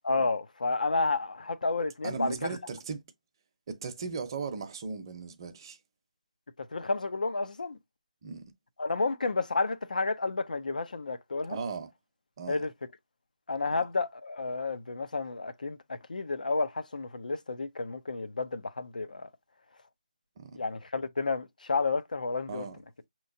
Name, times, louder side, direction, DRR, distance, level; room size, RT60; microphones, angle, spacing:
voice 1, 0.0-2.5 6.6-7.8 8.8-11.6 12.5-12.7 13.5-19.3 20.5-22.6, left 3 dB, 85° left, 0.7 m, -31 dB
voice 2, 2.0-3.0 3.7-5.8 8.2-8.4 11.5-11.9 12.4-12.7 20.4-20.6 22.5-22.8, right 5 dB, 35° right, 0.7 m, -37 dB
5.7 x 3.0 x 2.6 m
hypercardioid pair, 165°, 4 cm